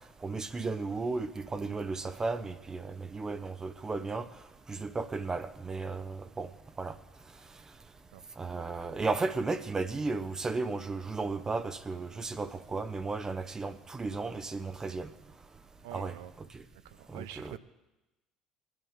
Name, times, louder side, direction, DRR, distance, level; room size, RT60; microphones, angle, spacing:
voice 1, 0.2-4.3 4.7-6.5 6.8-6.9 8.4-15.1 15.9-16.1 16.5-16.6 17.1-17.6, right 3 dB, 25° right, 13 dB, 0.8 m, -34 dB
voice 2, 8.5-9.0 15.8-16.4 16.8-17.6, right 14 dB, 70° right, 14 dB, 0.6 m, -46 dB
21.5 x 10.5 x 3.7 m, 1.0 s
figure-of-eight pair, 55°, 2 cm